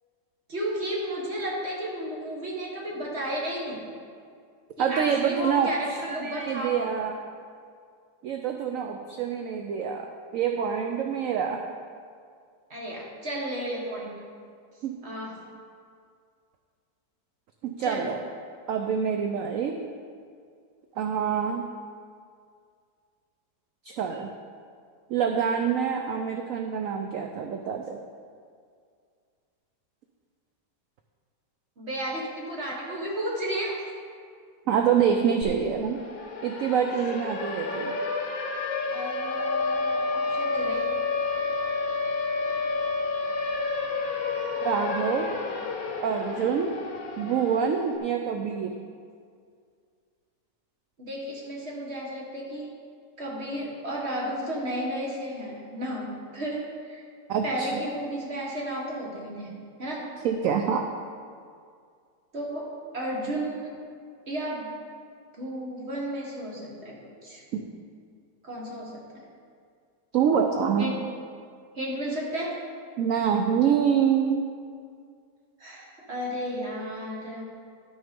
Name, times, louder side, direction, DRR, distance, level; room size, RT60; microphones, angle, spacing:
voice 1, 0.5-3.8 4.8-6.9 12.7-14.2 15.0-15.4 17.8-18.1 31.8-34.0 38.9-40.9 51.0-52.7 53.2-57.1 57.4-59.5 59.8-60.1 62.3-63.7 64.3-64.7 65.4-67.4 68.4-69.0 70.8-71.0 71.7-72.6 75.6-77.4, right 1 dB, 40° right, -3 dB, 1.9 m, -33 dB
voice 2, 4.8-7.2 8.2-10.1 10.3-11.6 14.8-15.0 17.6-18.2 18.7-19.8 21.0-21.7 23.8-24.3 25.1-28.0 34.7-36.0 36.4-38.0 44.6-45.3 46.0-46.7 47.2-48.8 57.3-57.7 60.2-60.8 67.5-67.6 70.1-70.9 73.0-74.4, right 7 dB, 65° right, 4 dB, 0.8 m, -26 dB
Siren, 35.4-35.5 35.8-47.9, left 4 dB, 60° left, 1.3 m, -30 dB
11.0 x 6.4 x 5.2 m, 2.2 s
omnidirectional pair, 1.8 m